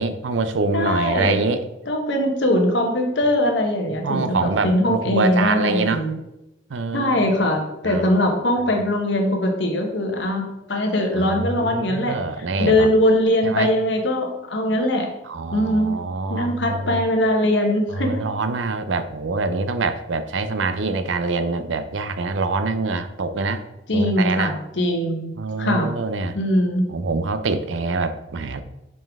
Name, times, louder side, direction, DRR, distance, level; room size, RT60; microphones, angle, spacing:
voice 1, 0.0-1.6 4.0-6.1 6.7-7.1 7.8-8.1 11.2-12.9 13.4-13.7 15.3-17.0 18.0-23.6 23.9-24.5 25.4-26.4 26.9-28.6, right 3 dB, 80° right, 11 dB, 0.5 m, -25 dB
voice 2, 0.7-1.4 1.9-6.2 6.9-15.1 15.5-16.0 16.3-18.2 23.9-25.9 26.3-26.9, left 1 dB, 70° left, 2 dB, 1.1 m, -21 dB
5.4 x 5.3 x 3.5 m, 0.90 s
head